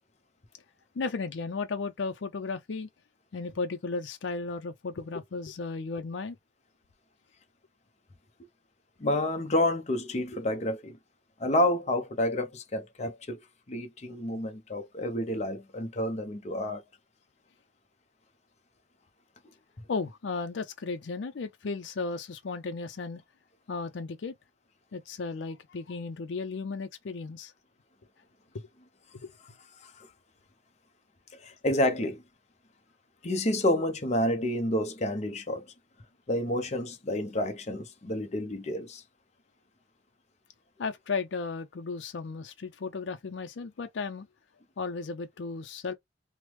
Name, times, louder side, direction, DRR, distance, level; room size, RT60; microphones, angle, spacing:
voice 1, 1.0-2.9 3.3-6.4 19.9-23.2 23.7-24.3 24.9-27.5 28.5-28.7 29.2-29.3 40.8-44.3 44.8-45.9, left 4 dB, 75° left, 0.5 m, -35 dB
voice 2, 9.0-11.0 11.4-16.8 29.8-30.1 31.3-32.2 33.2-35.6 36.3-39.0, left 1 dB, 35° left, 0.6 m, -29 dB
3.2 x 2.0 x 3.0 m
head